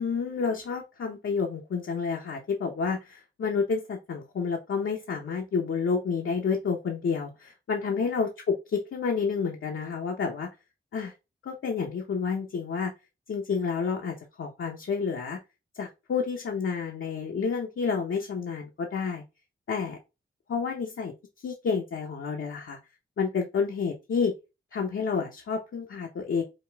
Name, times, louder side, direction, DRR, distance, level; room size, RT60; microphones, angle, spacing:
voice 1, 0.0-10.5 10.9-11.1 11.4-12.9 13.3-15.4 15.7-19.2 19.7-20.0 20.5-21.1 21.4-22.8 23.2-24.3 24.7-26.4, left 5 dB, 80° left, 1 dB, 0.8 m, -29 dB
5.1 x 2.4 x 3.4 m, 0.27 s
cardioid pair, 65°, 21 cm